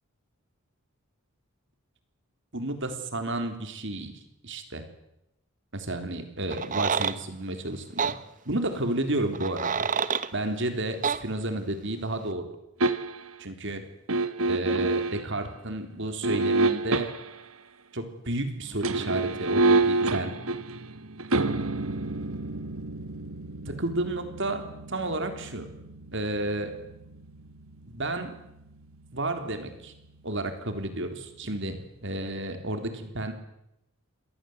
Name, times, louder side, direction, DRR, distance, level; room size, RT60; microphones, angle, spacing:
voice 1, 2.5-4.1 4.4-4.8 5.7-8.1 8.5-9.9 10.3-12.5 13.4-13.8 14.4-17.1 17.9-20.3 23.7-25.7 26.1-26.7 27.9-28.3 29.1-29.9 30.2-33.3, right 2 dB, 55° right, 7 dB, 3.6 m, -31 dB
sound 1, 6.5-7.2 8.0-8.2 9.3-10.3 11.0-11.2, right 6 dB, 35° right, 1.0 m, -27 dB
sound 2, 12.8-13.4 14.1-15.3 16.2-17.4 18.7-29.6 29.9-30.1, right 2 dB, 70° right, 1.4 m, -29 dB
26.0 x 19.5 x 8.0 m, 0.84 s
head